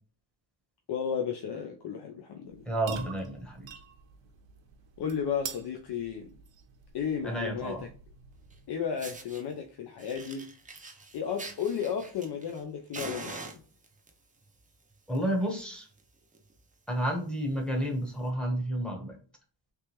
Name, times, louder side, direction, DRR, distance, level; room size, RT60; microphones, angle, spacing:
voice 1, 0.9-2.7 5.0-6.3 6.9-7.9 8.7-10.5 11.1-13.6, left 7 dB, 60° left, 0.6 m, -33 dB
sound 1, 2.5-8.9, right 7 dB, 70° right, 0.8 m, -46 dB
voice 2, 2.7-3.7 7.2-7.8 15.1-15.9 16.9-19.2, right 1 dB, ahead, 1.0 m, -31 dB
Fire, 8.5-8.6 9.0-9.4 10.0-12.6 12.9-14.1 14.9-15.2 15.5-15.6 16.0-16.1 16.3-16.6 17.1-17.2 18.1-18.2, right 3 dB, 20° right, 0.5 m, -43 dB
3.4 x 3.2 x 2.9 m
wide cardioid pair, 145°, 46 cm